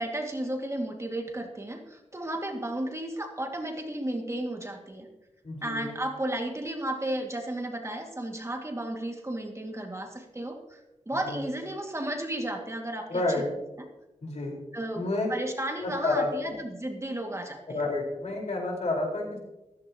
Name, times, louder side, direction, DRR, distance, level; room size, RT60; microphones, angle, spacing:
voice 1, 0.0-5.1 5.6-13.2 13.8-13.9 14.7-17.8, right 1 dB, 25° right, 2 dB, 2.1 m, -33 dB
voice 2, 5.4-5.8 11.3-11.4 13.1-13.4 14.2-14.6 14.9-15.3 15.8-16.5 17.7-19.4, left 2 dB, 65° left, -1 dB, 4.5 m, -29 dB
15.0 x 14.5 x 2.9 m, 0.96 s
wide cardioid pair, 90°, 12 cm